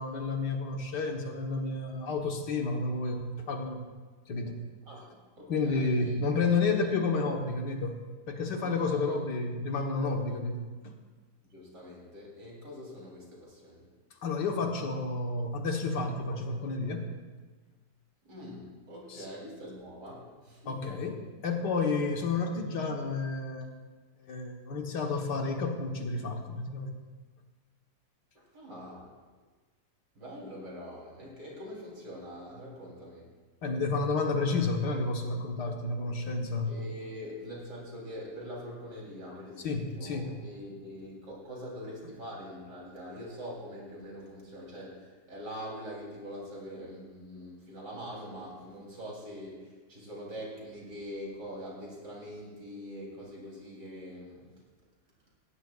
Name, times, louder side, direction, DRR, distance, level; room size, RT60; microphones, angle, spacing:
voice 1, 0.0-3.8 4.3-4.6 5.5-8.0 8.3-11.0 14.2-17.1 19.1-19.2 20.7-23.7 24.2-27.0 33.6-36.8 39.6-40.4, left 3 dB, 85° left, 3 dB, 2.0 m, -31 dB
voice 2, 4.8-6.2 6.5-7.0 8.6-9.2 11.5-13.9 18.2-21.0 28.3-29.1 30.2-33.3 36.6-54.6, equal, 80° right, -4 dB, 4.3 m, -44 dB
19.0 x 16.0 x 2.5 m, 1.4 s
omnidirectional pair, 1.8 m